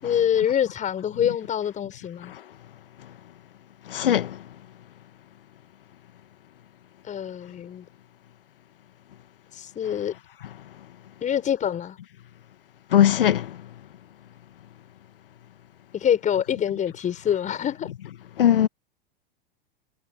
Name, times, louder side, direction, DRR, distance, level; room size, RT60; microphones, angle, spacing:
voice 1, 0.0-2.3 7.0-7.8 9.5-10.1 11.2-12.0 15.9-17.9, left 9 dB, 25° left, 6.7 m, -25 dB
voice 2, 3.9-4.3 12.9-13.5 18.4-18.7, left 10 dB, 70° left, 1.9 m, -18 dB
figure-of-eight pair, 95°, 29 cm